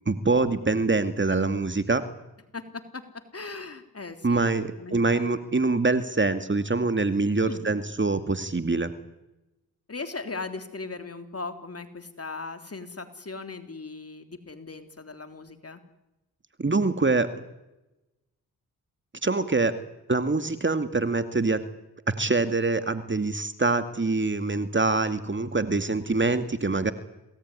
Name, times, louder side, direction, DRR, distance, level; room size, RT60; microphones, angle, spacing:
voice 1, 0.1-2.0 4.2-8.9 16.6-17.3 19.2-19.7 20.1-21.6 22.1-26.9, right 3 dB, 30° right, 10 dB, 2.3 m, -24 dB
voice 2, 2.5-4.4 4.8-5.3 7.4-7.7 9.9-15.8, left 3 dB, 35° left, 8 dB, 3.3 m, -38 dB
28.0 x 18.0 x 9.8 m, 0.95 s
cardioid pair, 55°, 40 cm